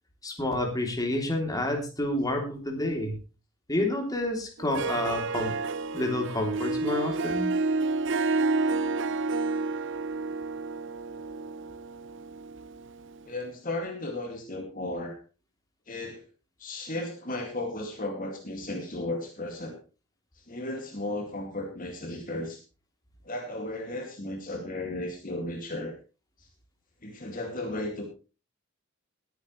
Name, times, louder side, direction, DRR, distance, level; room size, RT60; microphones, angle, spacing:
voice 1, 0.2-3.2 3.7-5.5 5.9-7.5, left 1 dB, 20° left, 2 dB, 3.1 m, -29 dB
Harp, 4.6-13.2, right 3 dB, 60° right, 0.7 m, -30 dB
voice 2, 13.2-15.2 15.9-16.2 16.6-19.8 20.3-22.6 23.2-26.0 26.4-26.5 27.0-28.1, left 2 dB, 40° left, 3 dB, 2.3 m, -35 dB
20.0 x 9.4 x 3.2 m, 0.33 s
head